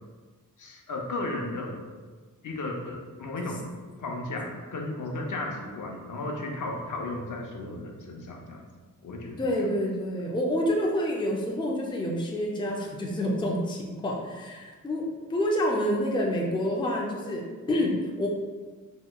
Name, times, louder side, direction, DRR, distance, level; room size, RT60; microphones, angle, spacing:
voice 1, 0.6-1.8 2.4-3.6 4.0-8.6 9.0-9.6, left 2 dB, 65° left, 1 dB, 0.6 m, -34 dB
voice 2, 9.4-15.0 15.3-18.3, equal, 15° left, -1 dB, 0.4 m, -28 dB
4.3 x 2.9 x 2.2 m, 1.4 s
wide cardioid pair, 140°, 34 cm